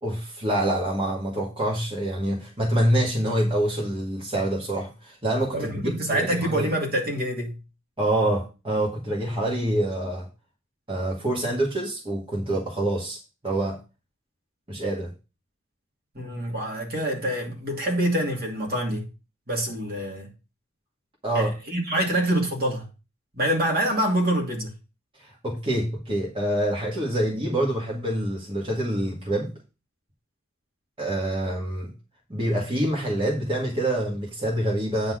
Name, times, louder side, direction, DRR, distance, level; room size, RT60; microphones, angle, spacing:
voice 1, 0.0-6.7 8.0-10.3 10.9-13.8 14.7-15.1 21.2-21.5 25.2-29.5 31.0-31.9 32.3-35.1, right 1 dB, 25° right, 1.9 m, -26 dB
voice 2, 5.5-7.5 16.1-19.1 19.5-20.3 21.3-22.9 23.3-24.7, right 1 dB, 45° right, 2.5 m, -26 dB
9.4 x 4.0 x 6.4 m
head